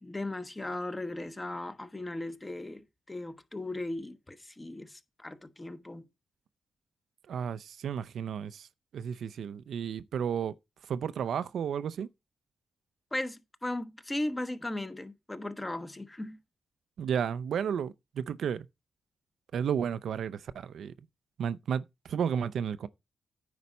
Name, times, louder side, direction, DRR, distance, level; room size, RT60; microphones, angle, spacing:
voice 1, 0.0-6.1 13.1-16.4, left 1 dB, 20° left, 1.0 m, -37 dB
voice 2, 7.3-8.7 8.9-10.5 10.8-12.1 17.0-18.7 19.5-20.9 21.4-22.9, right 8 dB, 75° right, 0.5 m, -32 dB
9.5 x 4.1 x 5.4 m
cardioid pair, 65°, 0 cm